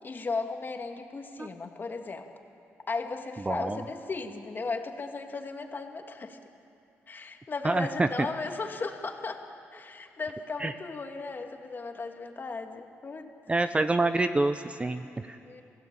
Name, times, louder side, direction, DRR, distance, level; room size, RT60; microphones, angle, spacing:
voice 1, 0.0-2.3 2.9-6.4 7.1-9.4 9.7-13.3 15.5-15.6, left 4 dB, 40° left, 4 dB, 2.5 m, -36 dB
voice 2, 3.5-3.8 7.6-8.1 10.6-10.7 13.5-15.4, right 2 dB, 20° right, 9 dB, 0.9 m, -27 dB
29.5 x 17.0 x 8.9 m, 2.7 s
cardioid pair, 70°, 5 cm